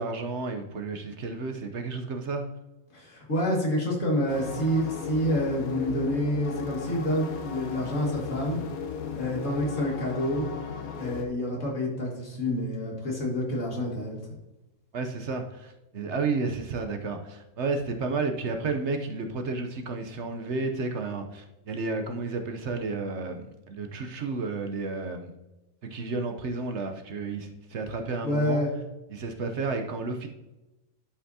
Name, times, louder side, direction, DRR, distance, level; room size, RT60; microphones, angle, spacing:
voice 1, 0.0-2.5 14.9-25.3 25.9-28.6 29.1-30.3, right 3 dB, 60° right, 5 dB, 1.0 m, -32 dB
voice 2, 2.9-8.6 9.2-10.5 11.0-14.2 28.2-28.7, equal, 65° left, -2 dB, 2.4 m, -28 dB
sound 1, 4.3-11.2, left 6 dB, 85° left, 1.3 m, -36 dB
11.0 x 5.6 x 2.7 m, 1.0 s
omnidirectional pair, 1.4 m